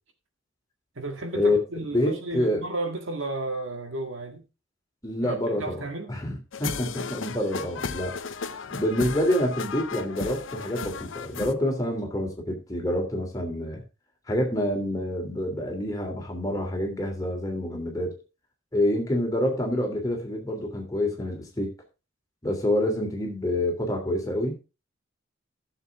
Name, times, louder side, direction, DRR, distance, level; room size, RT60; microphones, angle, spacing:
voice 1, 1.0-4.4 5.2-6.1, right 2 dB, 75° right, 1.9 m, -33 dB
voice 2, 1.9-2.6 5.0-5.8 6.1-13.8 14.3-18.2 18.7-21.7 22.4-24.6, left 1 dB, 15° left, 3.0 m, -27 dB
sound 1, 6.5-11.5, left 5 dB, 70° left, 0.7 m, -35 dB
15.0 x 7.0 x 3.6 m
head